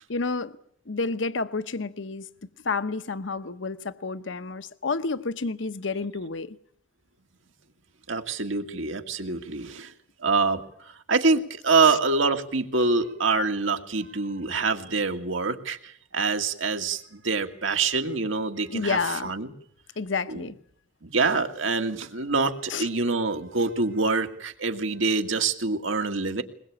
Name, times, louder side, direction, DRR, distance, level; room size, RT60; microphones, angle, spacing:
voice 1, 0.1-0.5 0.9-2.3 2.6-6.5 11.8-11.9 18.7-19.3 20.0-20.5 22.7-22.9, left 4 dB, 70° left, 0.9 m, -30 dB
voice 2, 8.1-9.9 10.2-19.5 20.3-20.4 21.0-26.4, right 4 dB, 85° right, 2.1 m, -25 dB
21.5 x 21.5 x 8.8 m
head